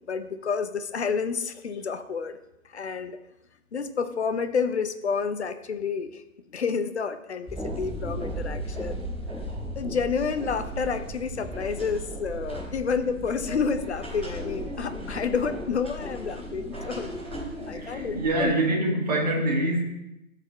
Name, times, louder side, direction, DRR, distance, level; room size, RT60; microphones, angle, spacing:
voice 1, 0.1-2.4 2.6-3.2 3.7-6.2 6.5-9.0 9.8-17.1 17.7-18.6, left 5 dB, 50° left, 10 dB, 0.7 m, -29 dB
sound 1, 7.5-18.5, equal, 5° right, 1.3 m, -36 dB
voice 2, 17.7-19.8, right 1 dB, 30° right, -1 dB, 1.4 m, -25 dB
12.0 x 4.2 x 4.1 m, 0.91 s
hypercardioid pair, 170°, 41 cm